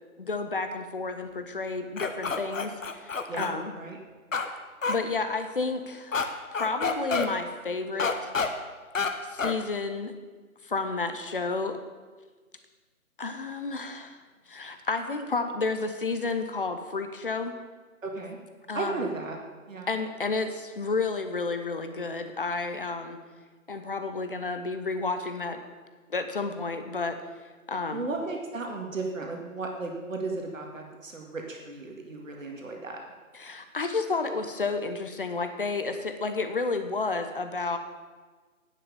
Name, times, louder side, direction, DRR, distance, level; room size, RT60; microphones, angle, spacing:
voice 1, 0.2-3.7 4.9-8.1 9.2-10.1 10.6-11.8 13.2-14.2 14.5-17.5 18.7-19.0 19.9-23.2 23.7-25.6 26.1-27.2 27.7-28.0 33.3-37.8, left 3 dB, 40° left, 8 dB, 0.9 m, -31 dB
sound 1, 2.0-3.5 4.3-4.5 4.8-5.0 6.1-6.3 6.5-7.3 8.0-8.5 8.9-9.1 9.4-9.6, left 4 dB, 65° left, 1.1 m, -28 dB
voice 2, 3.3-4.0 18.0-18.4 18.7-19.4 19.7-19.9 27.9-33.0, right 3 dB, 65° right, 1 dB, 2.2 m, -35 dB
10.0 x 6.6 x 6.9 m, 1.4 s
figure-of-eight pair, 165°, 43 cm